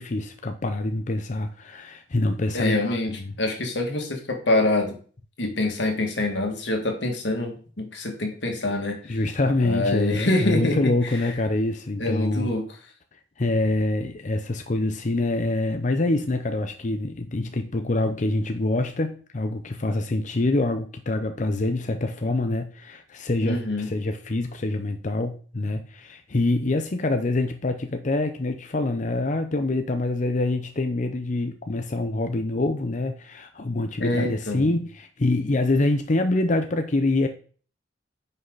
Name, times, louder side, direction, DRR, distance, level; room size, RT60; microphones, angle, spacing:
voice 1, 0.0-3.3 9.1-12.5 13.4-37.3, left 2 dB, 45° left, 7 dB, 0.7 m, -25 dB
voice 2, 2.5-3.1 3.4-5.0 5.4-9.2 9.6-11.2 12.0-12.6 23.4-23.9 34.0-34.8, left 2 dB, 90° left, 3 dB, 2.1 m, -25 dB
9.7 x 5.6 x 4.0 m, 0.42 s
head